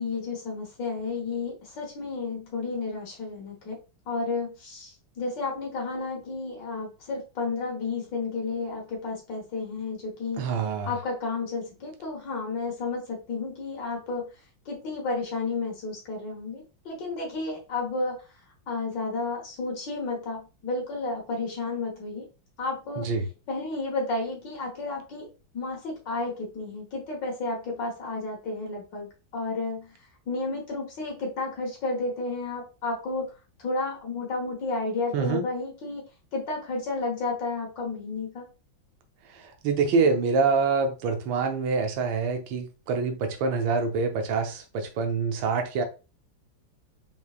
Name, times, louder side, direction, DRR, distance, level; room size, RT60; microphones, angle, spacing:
voice 1, 0.0-3.8 4.1-10.5 10.9-14.2 14.7-18.2 18.7-22.3 22.6-23.1 23.5-25.3 25.5-29.1 29.3-29.9 30.3-33.3 33.6-36.0 36.3-38.5, left 3 dB, 65° left, 1.9 m, -32 dB
voice 2, 10.4-10.9 23.0-23.2 35.1-35.4 39.3-45.8, right 4 dB, 75° right, 1.5 m, -26 dB
5.4 x 3.2 x 2.4 m
omnidirectional pair, 2.2 m